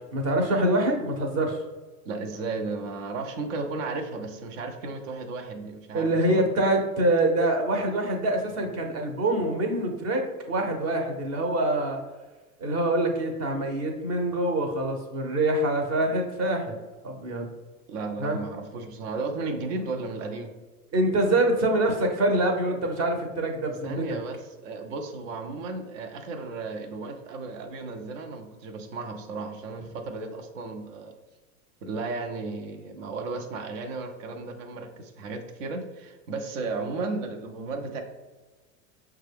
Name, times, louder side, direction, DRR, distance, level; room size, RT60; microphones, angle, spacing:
voice 1, 0.1-1.6 5.9-12.0 12.6-16.7 17.0-17.5 18.2-18.4 20.9-24.0, right 1 dB, 35° right, 3 dB, 0.9 m, -25 dB
voice 2, 2.0-6.4 17.9-20.5 23.8-31.1 31.8-38.0, right 3 dB, 60° right, 5 dB, 0.8 m, -34 dB
5.7 x 2.3 x 3.3 m, 1.3 s
hypercardioid pair, 105°, 43 cm